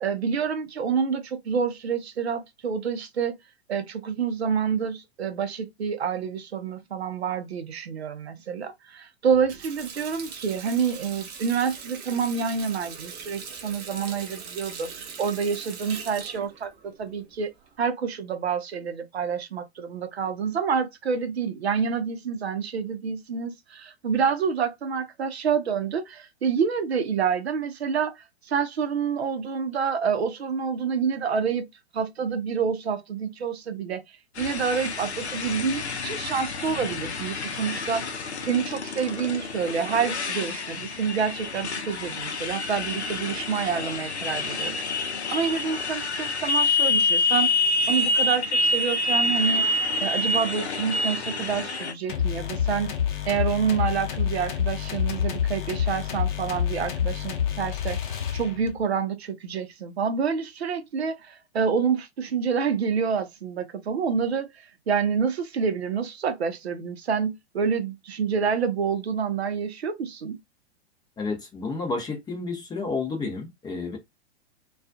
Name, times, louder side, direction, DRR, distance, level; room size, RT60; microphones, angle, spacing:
voice 1, 0.0-3.4 3.7-17.5 17.8-31.7 31.9-34.0 34.4-38.1 38.4-44.8 45.3-47.5 47.9-49.7 50.0-52.9 53.3-58.0 58.3-64.5 64.9-70.4, right 6 dB, 70° right, 0.6 m, -28 dB
Water tap faucet, 9.3-17.8, right 6 dB, 30° right, 0.6 m, -41 dB
Motorcycle, 34.4-51.9, left 2 dB, 85° left, 0.6 m, -27 dB
sound 1, 52.1-58.8, left 9 dB, 50° left, 0.8 m, -28 dB
voice 2, 71.2-74.0, left 4 dB, 10° left, 0.7 m, -31 dB
2.3 x 2.3 x 2.5 m
figure-of-eight pair, 105°, 33 cm